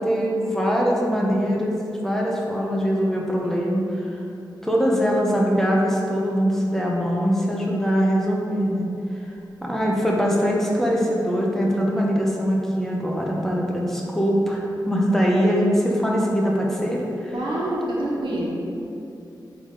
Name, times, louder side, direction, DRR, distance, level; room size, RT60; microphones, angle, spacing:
voice 1, 0.0-1.7 2.0-4.2 4.6-8.9 9.6-17.3, equal, 5° left, -3 dB, 0.7 m, -22 dB
voice 2, 17.3-18.5, right 1 dB, 85° right, -5 dB, 1.3 m, -26 dB
8.1 x 3.4 x 3.8 m, 2.7 s
wide cardioid pair, 140°, 8 cm